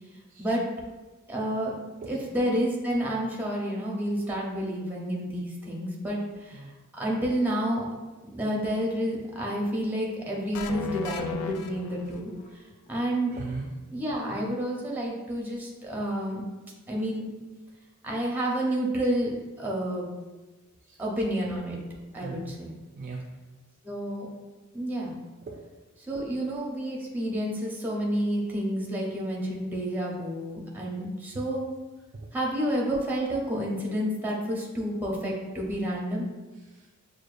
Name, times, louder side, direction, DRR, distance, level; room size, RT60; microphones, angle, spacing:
voice 1, 1.3-1.7 2.1-6.6 7.0-7.8 8.3-12.3 12.9-13.3 13.9-16.4 16.9-17.3 18.0-20.1 21.0-21.8 22.1-22.8 23.8-24.3 24.7-25.2 26.0-31.7 32.3-36.3, right 1 dB, 10° right, -3 dB, 0.6 m, -29 dB
sound 1, 10.5-12.5, left 6 dB, 80° left, 0.3 m, -35 dB
voice 2, 13.3-13.7 20.9-21.0 22.1-22.6 23.0-23.3 25.4-25.6 36.7-36.9, right 3 dB, 35° right, -1 dB, 0.3 m, -39 dB
6.3 x 2.2 x 2.5 m, 1.2 s
head